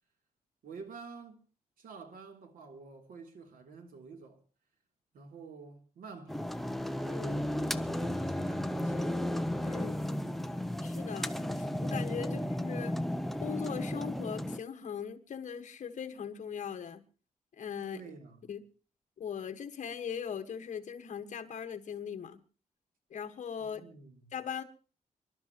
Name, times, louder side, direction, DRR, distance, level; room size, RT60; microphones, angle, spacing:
voice 1, 0.6-1.4 1.8-4.4 5.1-6.5 7.5-9.2 12.2-12.5 17.9-18.5 23.6-24.4, right 5 dB, 90° right, 3.2 m, -49 dB
sound 1, 6.3-14.6, left 1 dB, ahead, 0.7 m, -34 dB
voice 2, 7.1-7.5 9.6-10.1 10.8-12.9 13.4-17.0 17.6-18.0 18.5-18.6 19.2-22.4 23.1-23.8 24.3-24.6, left 7 dB, 60° left, 1.6 m, -40 dB
26.5 x 12.0 x 3.0 m
wide cardioid pair, 150°, 14 cm